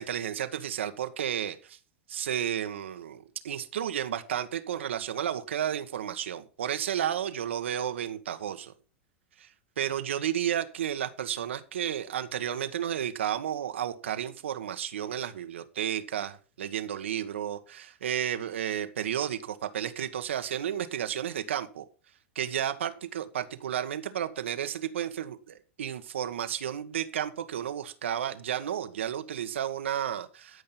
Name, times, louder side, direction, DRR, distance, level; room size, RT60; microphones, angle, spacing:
voice 1, 0.0-1.8 2.1-8.7 9.4-9.5 9.8-21.8 22.3-30.6, right 10 dB, 80° right, 1.3 m, -32 dB
13.0 x 5.5 x 5.8 m
hypercardioid pair, 105°, 6 cm